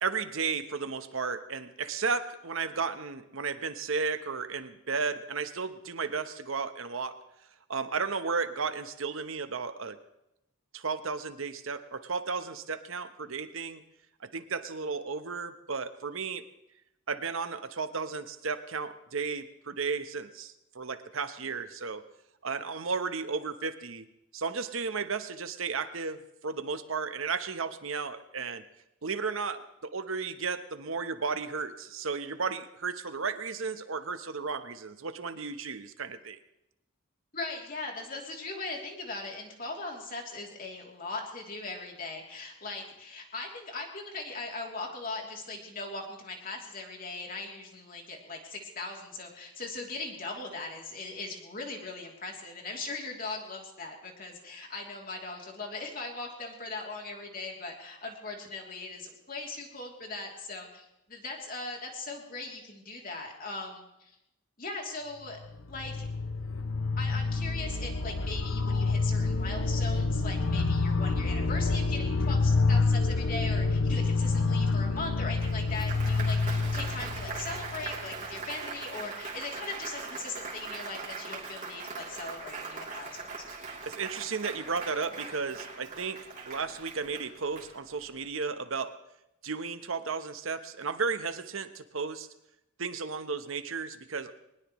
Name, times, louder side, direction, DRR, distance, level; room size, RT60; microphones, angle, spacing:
voice 1, 0.0-7.2 7.7-10.0 10.7-13.8 14.2-16.4 17.1-22.0 22.4-24.0 24.3-28.6 29.0-36.4 83.9-88.9 89.4-92.3 92.8-94.4, right 5 dB, 70° right, 10 dB, 1.0 m, -34 dB
voice 2, 37.3-64.2 64.6-65.4 65.7-66.1 67.0-83.3, left 3 dB, 40° left, 0 dB, 3.1 m, -39 dB
sound 1, 65.4-78.3, left 3 dB, 65° left, 0.8 m, -28 dB
Applause, 75.4-88.1, right 4 dB, 35° right, 3.1 m, -41 dB
22.0 x 20.0 x 3.1 m, 0.86 s
head